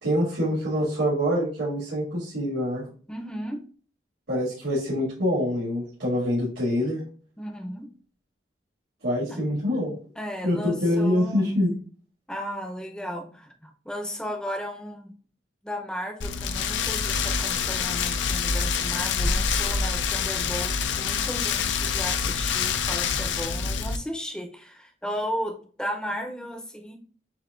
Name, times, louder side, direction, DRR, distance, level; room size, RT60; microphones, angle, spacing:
voice 1, 0.0-2.8 4.3-7.0 9.0-9.9 10.4-11.7, equal, 85° right, -8 dB, 2.1 m, -25 dB
voice 2, 3.1-3.6 7.4-7.9 9.3-9.4 10.2-11.5 12.3-15.1 15.6-27.0, equal, 5° left, 4 dB, 0.6 m, -35 dB
Rain, 16.2-24.0, left 6 dB, 80° left, 0.4 m, -26 dB
7.3 x 2.7 x 2.4 m, 0.43 s
head